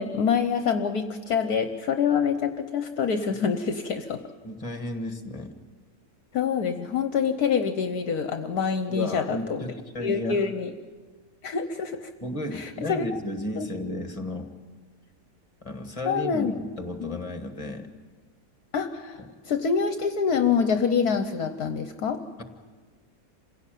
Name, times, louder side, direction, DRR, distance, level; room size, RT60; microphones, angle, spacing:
voice 1, 0.0-4.2 6.3-9.6 10.0-10.7 11.4-12.1 12.5-13.0 13.6-13.7 16.1-16.5 17.0-17.2 18.7-22.2, left 6 dB, 65° left, 8 dB, 1.4 m, -26 dB
voice 2, 4.4-5.5 8.9-10.5 12.2-14.5 15.6-17.9 19.2-19.3, left 1 dB, 20° left, 7 dB, 1.8 m, -33 dB
27.0 x 16.5 x 9.2 m, 1.5 s
omnidirectional pair, 1.9 m